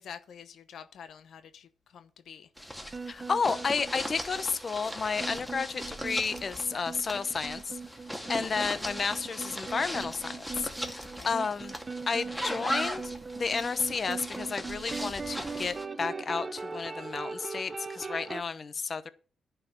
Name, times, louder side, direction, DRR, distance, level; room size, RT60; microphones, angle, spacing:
voice 1, 0.0-2.5 8.2-8.5 11.2-11.5, left 8 dB, 75° left, 0.8 m, -48 dB
sound 1, 2.6-15.9, equal, ahead, 2.3 m, -39 dB
sound 2, 2.9-18.4, right 4 dB, 35° right, 0.8 m, -40 dB
voice 2, 3.1-7.8 8.3-11.7 12.1-19.1, left 5 dB, 50° left, 1.0 m, -32 dB
10.5 x 5.7 x 7.1 m
supercardioid pair, 60°, 0 cm